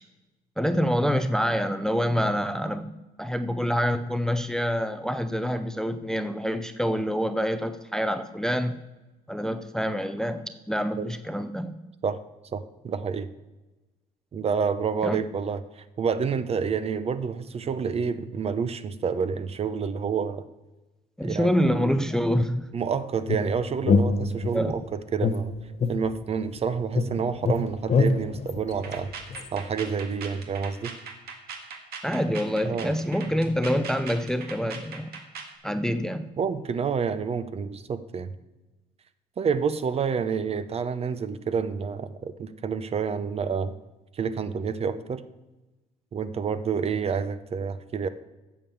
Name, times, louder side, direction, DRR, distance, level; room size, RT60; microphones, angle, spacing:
voice 1, 0.6-2.9 3.2-8.8 9.3-11.8 15.0-15.2 21.2-22.7 24.5-24.7 32.0-35.1 35.6-36.3, equal, 5° left, 11 dB, 0.5 m, -26 dB
voice 2, 12.5-13.3 14.3-20.4 21.2-22.0 22.7-25.5 25.9-29.1 29.5-30.9 32.6-32.9 36.4-38.3 39.4-43.7 44.1-45.2 46.1-48.1, right 6 dB, 35° right, 13 dB, 0.7 m, -28 dB
sound 1, 23.3-24.8 25.2-26.6 27.0-29.5, left 4 dB, 40° left, 0.9 m, -25 dB
sound 2, 28.7-35.6, right 5 dB, 70° right, 1.7 m, -40 dB
8.8 x 7.0 x 7.1 m, 1.1 s
cardioid pair, 110°, 17 cm